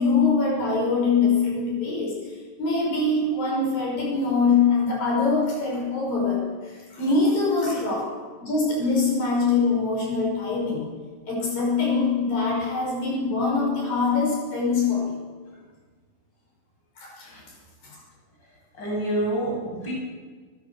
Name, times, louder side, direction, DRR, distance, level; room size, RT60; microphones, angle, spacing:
voice 1, 0.0-8.1 8.4-10.9 11.3-15.2 17.0-17.3 17.8-17.9, left 4 dB, 75° left, -2 dB, 7.5 m, -23 dB
voice 2, 18.8-19.9, right 1 dB, 30° left, -3 dB, 8.4 m, -28 dB
29.0 x 15.0 x 7.2 m, 1.5 s
omnidirectional pair, 4.0 m